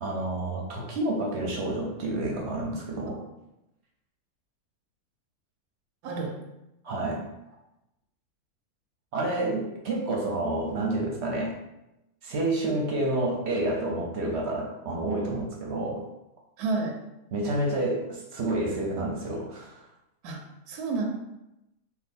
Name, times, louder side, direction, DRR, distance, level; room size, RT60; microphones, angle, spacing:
voice 1, 0.0-3.2 6.8-7.2 9.1-11.5 12.2-16.0 17.3-19.7, right 2 dB, 55° right, -1 dB, 0.9 m, -29 dB
voice 2, 6.0-6.4 16.6-17.0 20.2-20.4 20.7-21.0, right 3 dB, 90° right, 2 dB, 1.1 m, -30 dB
3.5 x 2.5 x 4.2 m, 0.92 s
omnidirectional pair, 1.6 m